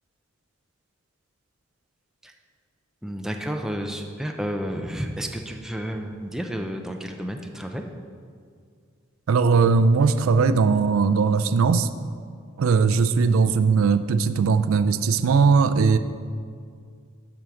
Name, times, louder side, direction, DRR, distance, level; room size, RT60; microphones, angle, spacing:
voice 1, 3.0-7.8, equal, ahead, 3 dB, 0.5 m, -31 dB
voice 2, 9.3-11.9 12.6-16.0, right 5 dB, 90° right, 11 dB, 0.4 m, -19 dB
7.5 x 5.1 x 6.9 m, 2.2 s
head